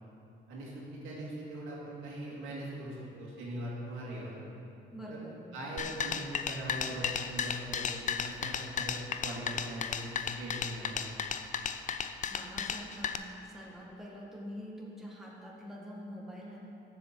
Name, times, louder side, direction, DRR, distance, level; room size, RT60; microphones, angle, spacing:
voice 1, 1.0-4.4 5.1-5.2 5.5-11.2, right 1 dB, 90° right, -5 dB, 2.2 m, -41 dB
voice 2, 4.9-5.4 12.3-16.6, equal, ahead, -4 dB, 1.6 m, -45 dB
sound 1, 5.8-13.2, left 7 dB, 40° left, 0.4 m, -34 dB
7.2 x 7.1 x 5.8 m, 2.8 s
cardioid pair, 90°, 20 cm